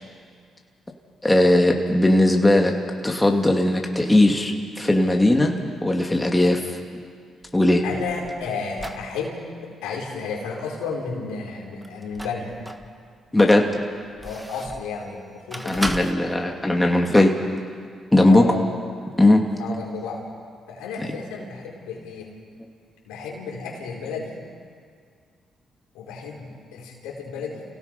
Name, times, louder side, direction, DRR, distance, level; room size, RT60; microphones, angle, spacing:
voice 1, 1.2-2.7 3.0-5.5 5.8-6.6 7.5-7.8 13.3-13.7 15.6-17.3 18.1-18.4 19.2-19.4 21.0-21.1, left 1 dB, 15° left, 2 dB, 2.5 m, -18 dB
sound 1, 7.4-9.1 11.8-12.9 13.4-14.9 15.5-16.1, right 1 dB, 10° right, 1.7 m, -35 dB
voice 2, 7.8-12.6 14.2-16.4 18.2-18.6 19.6-20.2 20.7-22.3 23.0-24.3 25.9-27.6, left 4 dB, 90° left, -2 dB, 4.3 m, -32 dB
29.5 x 17.5 x 5.4 m, 2.1 s
supercardioid pair, 60°, 0 cm